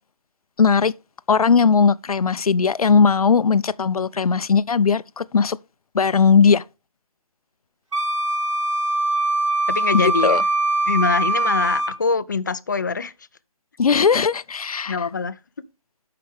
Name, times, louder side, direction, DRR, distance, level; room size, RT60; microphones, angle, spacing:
voice 1, 0.6-0.9 1.3-5.6 5.9-6.6 9.9-10.4 13.8-15.0, left 5 dB, 85° left, 0.6 m, -18 dB
Wind instrument woodwind instrument, 7.9-12.0, right 2 dB, 60° right, 1.3 m, -22 dB
voice 2, 9.7-10.4 10.9-13.1 14.9-15.7, left 4 dB, 30° left, 0.5 m, -24 dB
13.5 x 5.8 x 3.5 m
hypercardioid pair, 170°, 18 cm